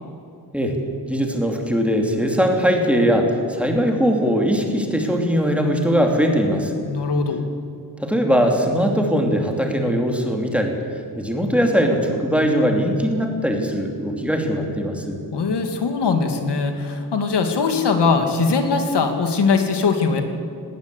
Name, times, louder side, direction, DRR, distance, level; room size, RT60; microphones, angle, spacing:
voice 1, 1.1-6.7 8.0-10.7 11.2-15.2, equal, 5° right, 2 dB, 2.6 m, -20 dB
voice 2, 6.8-7.4 15.3-20.2, left 4 dB, 85° left, 5 dB, 2.4 m, -21 dB
19.0 x 18.5 x 8.4 m, 2.5 s
wide cardioid pair, 170°, 40 cm